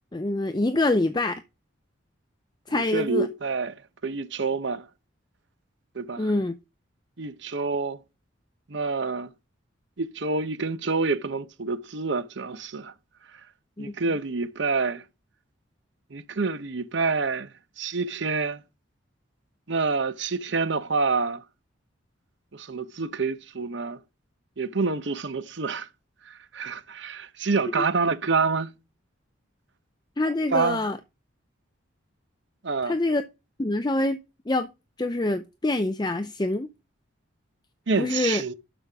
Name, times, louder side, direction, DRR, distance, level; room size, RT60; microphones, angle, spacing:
voice 1, 0.1-1.4 2.7-3.3 6.2-6.5 13.8-13.9 27.7-27.8 30.2-31.0 32.8-33.2 33.6-34.2 34.5-34.7 35.0-36.7 38.0-38.4, left 2 dB, 20° left, 0.5 m, -25 dB
voice 2, 2.7-3.8 4.0-4.8 5.9-6.3 7.2-8.0 8.7-9.3 10.0-12.9 13.8-15.0 16.1-17.5 17.8-18.6 19.7-21.4 22.5-24.0 24.6-25.9 26.3-28.7 30.5-30.9 32.6-33.0 37.9-38.5, right 4 dB, 60° right, 0.8 m, -27 dB
12.0 x 5.5 x 3.5 m
head